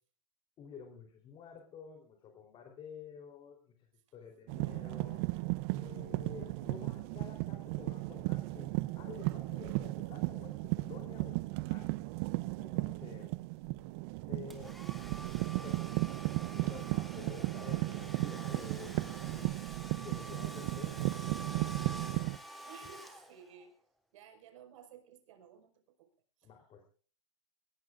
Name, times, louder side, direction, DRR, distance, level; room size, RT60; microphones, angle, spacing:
voice 1, 0.6-3.7 4.1-5.2 5.7-12.0 12.6-13.3 14.3-14.7 15.6-15.9 16.4-19.6 19.9-21.1 26.4-26.8, left 7 dB, 30° left, 3 dB, 3.8 m, -50 dB
sound 1, 4.5-22.4, right 21 dB, 50° right, 0.7 m, -35 dB
voice 2, 13.0-13.5 22.6-23.7 24.1-26.1 26.4-26.5, right 7 dB, 70° right, 5 dB, 5.4 m, -56 dB
Domestic sounds home sounds, 14.5-23.7, right 1 dB, ahead, 3.2 m, -48 dB
22.5 x 20.0 x 2.6 m, 0.42 s
hypercardioid pair, 125°, 17 cm